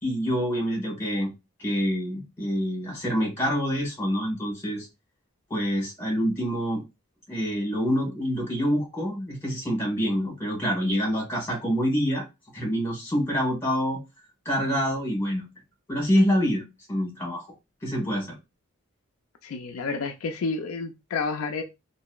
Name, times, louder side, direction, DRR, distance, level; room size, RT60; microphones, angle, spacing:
voice 1, 0.0-1.3 1.6-4.9 5.5-6.8 7.3-12.2 12.5-14.0 14.4-15.5 15.9-16.6 16.9-17.4 17.8-18.3, equal, 10° left, -1 dB, 1.2 m, -26 dB
voice 2, 19.4-21.6, left 4 dB, 65° left, 5 dB, 0.4 m, -30 dB
2.8 x 2.6 x 2.3 m, 0.23 s
head